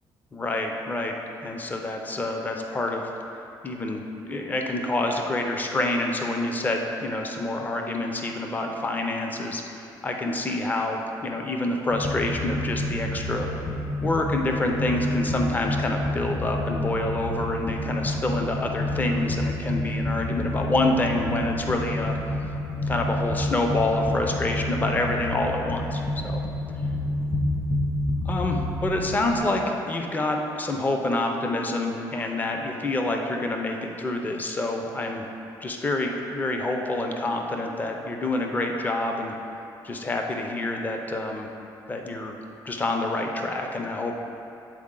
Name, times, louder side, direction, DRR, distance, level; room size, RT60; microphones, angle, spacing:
voice 1, 0.3-3.1 3.6-13.7 14.0-22.2 22.8-26.4 28.2-35.3 35.6-39.4 39.8-41.5 41.9-42.4 42.7-44.2, left 2 dB, 20° left, 2 dB, 0.5 m, -27 dB
sound 1, 11.9-29.5, left 1 dB, 35° left, 1.1 m, -29 dB
7.6 x 3.9 x 3.8 m, 2.7 s
cardioid pair, 120°, 8 cm